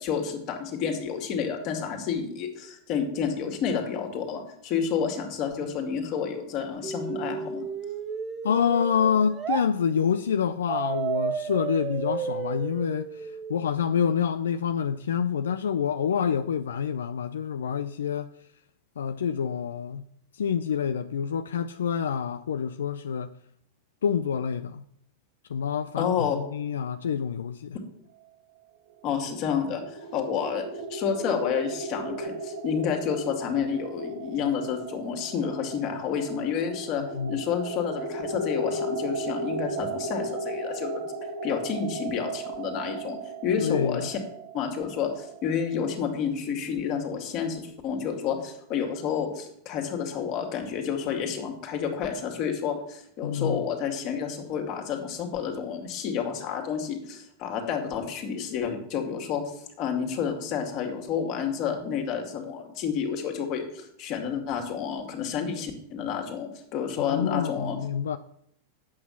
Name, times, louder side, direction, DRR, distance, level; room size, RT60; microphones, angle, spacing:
voice 1, 0.0-7.6 26.0-26.4 29.0-41.0 41.4-44.2 44.5-67.8, left 7 dB, 50° left, 2.3 m, -30 dB
sound 1, 6.8-9.7 10.7-13.7, right 7 dB, 30° right, 0.7 m, -32 dB
voice 2, 8.4-18.3 19.0-20.1 20.3-23.3 24.0-24.8 25.5-27.8 37.2-37.4 43.6-44.1 53.2-53.6 67.1-68.2, left 7 dB, 80° left, 0.4 m, -27 dB
sound 2, 29.0-45.8, right 2 dB, 80° right, 1.6 m, -36 dB
8.5 x 6.2 x 7.1 m
hypercardioid pair, 105°, 0 cm